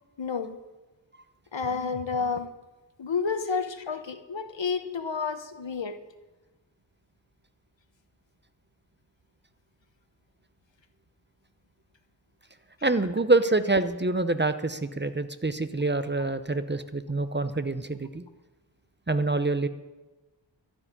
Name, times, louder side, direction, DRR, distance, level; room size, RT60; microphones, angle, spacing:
voice 1, 0.2-0.6 1.5-2.5 3.0-6.0, left 5 dB, 75° left, 9 dB, 1.1 m, -30 dB
voice 2, 12.8-18.2 19.1-19.7, right 2 dB, 25° right, 11 dB, 0.7 m, -26 dB
12.5 x 7.0 x 9.9 m, 1.1 s
wide cardioid pair, 55°, 45 cm